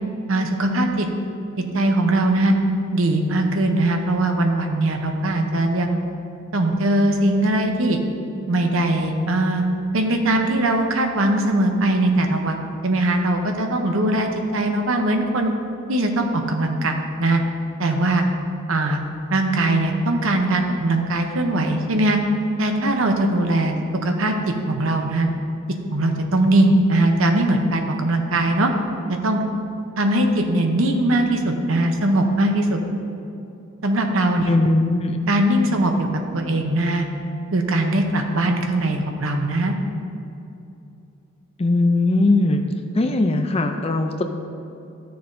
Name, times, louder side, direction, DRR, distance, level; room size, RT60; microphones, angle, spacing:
voice 1, 0.3-1.1 1.7-2.5 2.9-6.0 6.5-8.0 8.5-9.6 9.9-15.5 15.9-17.4 17.8-18.2 18.7-19.0 19.3-22.2 22.6-23.8 24.0-24.3 24.7-25.3 25.9-28.7 29.2-29.4 30.0-32.8 33.8-34.5 35.3-36.1 36.3-37.1 37.5-39.7, right 1 dB, 60° right, 4 dB, 0.8 m, -20 dB
voice 2, 34.5-35.2 41.6-42.6 42.9-44.2, left 2 dB, 25° left, 6 dB, 0.4 m, -19 dB
13.0 x 6.7 x 2.7 m, 2.7 s
head